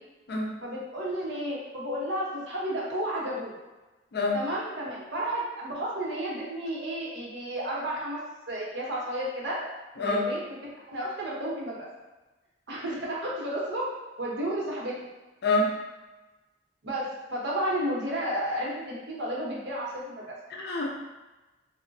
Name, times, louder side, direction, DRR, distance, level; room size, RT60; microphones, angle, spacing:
voice 1, 0.6-3.5 4.3-8.2 8.5-9.6 10.0-10.6 10.9-11.9 12.7-13.9 14.2-14.9 16.8-20.3, right 1 dB, 65° right, -4 dB, 0.7 m, -32 dB
voice 2, 15.4-15.7 20.5-21.0, left 2 dB, 60° left, 0 dB, 0.5 m, -26 dB
3.0 x 2.0 x 2.6 m, 1.1 s
head